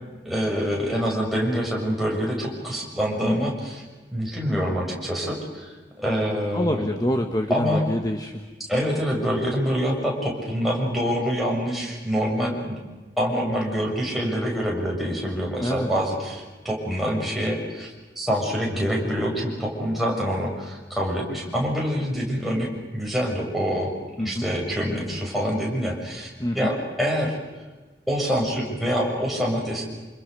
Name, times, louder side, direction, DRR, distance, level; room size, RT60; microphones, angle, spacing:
voice 1, 0.2-3.8 4.1-6.9 7.5-7.9 8.7-12.8 13.2-23.9 24.2-26.3 26.5-27.4 28.1-29.8, equal, ahead, -3 dB, 6.8 m, -26 dB
voice 2, 3.2-3.5 6.5-8.4 15.6-15.9 24.2-24.4 26.4-26.7, left 1 dB, 20° left, 5 dB, 1.4 m, -26 dB
28.0 x 27.5 x 6.7 m, 1.2 s
head